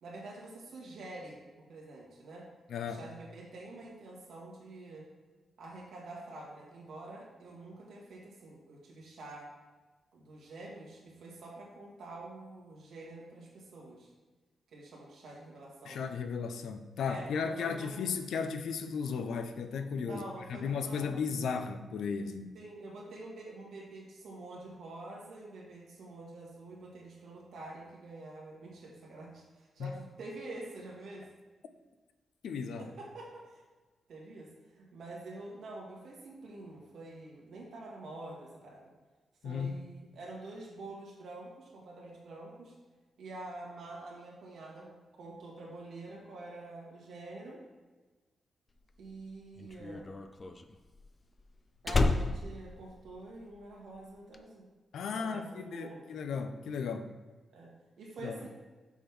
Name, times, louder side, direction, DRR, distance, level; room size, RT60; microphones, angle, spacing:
voice 1, 0.0-1.4 1.7-2.5 2.8-5.1 5.6-9.5 10.1-14.1 14.7-16.1 17.1-17.9 20.1-21.2 22.5-31.3 32.8-33.6 34.1-38.9 39.4-42.7 43.2-47.6 49.0-50.1 51.8-54.6 55.1-56.1 57.5-57.7 58.0-58.5, right 2 dB, 70° right, -3 dB, 2.1 m, -47 dB
voice 2, 2.7-3.0 15.8-20.2 20.5-22.5 29.8-30.0 32.4-32.9 39.4-39.9 54.9-57.1 58.2-58.4, left 5 dB, 85° left, 8 dB, 0.6 m, -35 dB
Slam, 48.9-53.7 53.9-54.4, left 3 dB, 25° left, 0.4 m, -32 dB
7.0 x 3.7 x 6.1 m, 1.3 s
wide cardioid pair, 160°, 0 cm